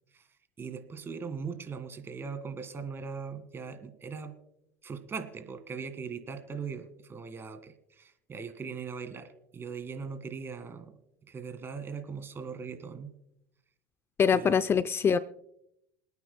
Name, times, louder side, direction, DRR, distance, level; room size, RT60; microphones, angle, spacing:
voice 1, 0.6-4.3 4.8-10.9 11.3-13.1 14.3-14.6, right 5 dB, 30° right, 10 dB, 1.9 m, -40 dB
voice 2, 14.2-15.2, left 6 dB, 30° left, 13 dB, 0.5 m, -24 dB
28.0 x 9.3 x 2.2 m, 0.79 s
hypercardioid pair, 90°, 8 cm